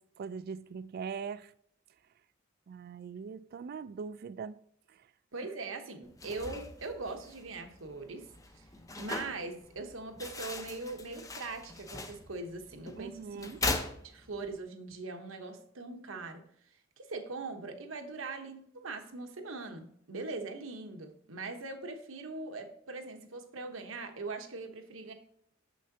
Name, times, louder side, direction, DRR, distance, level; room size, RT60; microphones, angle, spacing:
voice 1, 0.0-1.5 2.7-4.6 13.0-13.6, right 6 dB, 50° right, 0.3 m, -41 dB
voice 2, 5.3-8.7 9.0-16.4 17.0-25.1, right 3 dB, 90° right, 1.0 m, -41 dB
sound 1, 6.0-14.6, left 2 dB, 15° left, 0.6 m, -40 dB
6.7 x 6.3 x 2.7 m
head